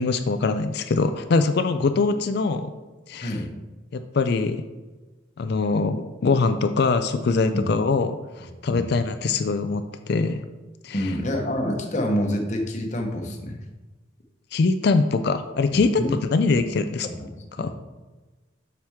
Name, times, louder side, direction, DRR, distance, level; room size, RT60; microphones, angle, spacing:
voice 1, 0.0-2.7 3.1-3.4 3.9-4.6 5.4-10.4 10.8-11.1 14.5-17.1 17.6-17.7, left 4 dB, 55° left, 9 dB, 0.4 m, -23 dB
voice 2, 10.9-13.6 16.0-16.1 17.0-17.3 17.6-17.7, equal, 35° left, 2 dB, 1.0 m, -27 dB
7.4 x 5.9 x 3.6 m, 1.2 s
head